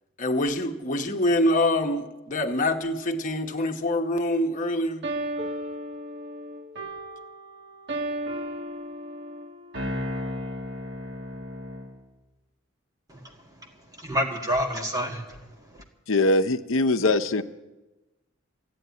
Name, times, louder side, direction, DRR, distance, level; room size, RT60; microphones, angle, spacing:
voice 1, 0.2-5.0, left 1 dB, 40° left, 1.1 m, -25 dB
sound 1, 5.0-12.0, equal, 60° right, 1.7 m, -34 dB
voice 2, 13.1-15.8, equal, 20° right, 1.7 m, -30 dB
voice 3, 16.1-17.4, left 2 dB, 80° left, 0.8 m, -22 dB
14.0 x 9.4 x 9.4 m
head